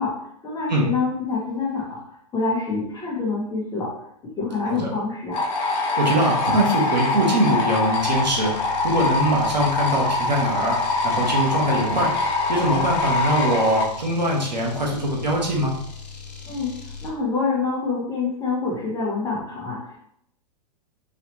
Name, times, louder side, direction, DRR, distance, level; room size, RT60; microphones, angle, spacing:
voice 1, 0.0-2.0 2.3-3.9 4.2-5.4 16.5-16.8 17.0-20.0, left 4 dB, 20° left, -2 dB, 1.1 m, -26 dB
sound 1, 5.3-13.8, left 3 dB, 50° left, 1.0 m, -24 dB
voice 2, 6.0-8.5 8.8-10.8 11.0-12.1 12.5-15.7, right 1 dB, 90° right, -2 dB, 1.2 m, -22 dB
sound 2, 8.0-17.2, left 4 dB, 75° left, 0.8 m, -39 dB
3.2 x 2.7 x 2.8 m, 0.72 s
hypercardioid pair, 115°, 21 cm